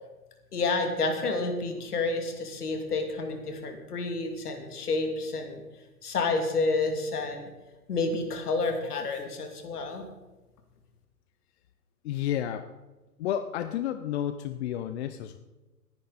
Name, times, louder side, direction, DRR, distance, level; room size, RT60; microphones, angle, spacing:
voice 1, 0.5-5.6 6.0-7.5 7.9-10.0, left 3 dB, 75° left, 4 dB, 2.9 m, -29 dB
voice 2, 12.0-12.7 13.2-15.4, left 11 dB, 45° left, 9 dB, 0.8 m, -31 dB
18.5 x 10.0 x 4.2 m, 1.1 s
hypercardioid pair, 125°, 46 cm